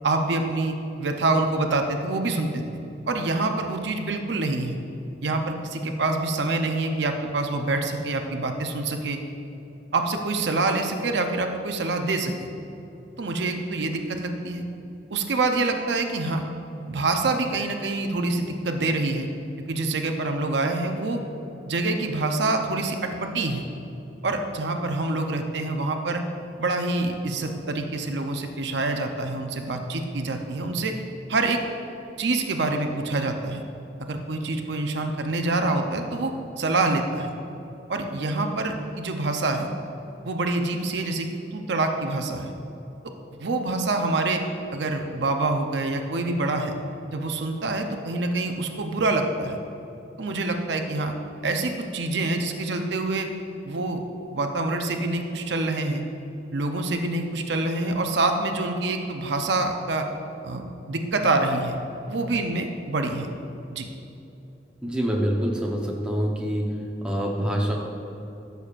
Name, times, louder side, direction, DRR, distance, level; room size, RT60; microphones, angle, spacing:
voice 1, 0.0-2.6 3.1-4.8 5.2-9.2 9.9-12.5 13.2-14.6 15.1-16.4 16.9-19.3 19.7-21.2 21.7-23.6 24.2-26.2 26.6-31.0 31.3-31.6 32.2-33.6 34.0-37.3 37.9-39.7 40.2-42.5 43.4-44.4 44.7-46.7 47.1-49.6 50.2-51.1 51.4-53.3 53.6-54.0 54.3-56.0 56.5-60.1 60.4-61.8 62.1-63.3 63.7-63.9, right 2 dB, 75° right, 4 dB, 0.6 m, -26 dB
voice 2, 64.8-67.7, equal, 5° right, -2 dB, 0.9 m, -26 dB
13.0 x 6.8 x 2.5 m, 2.8 s
head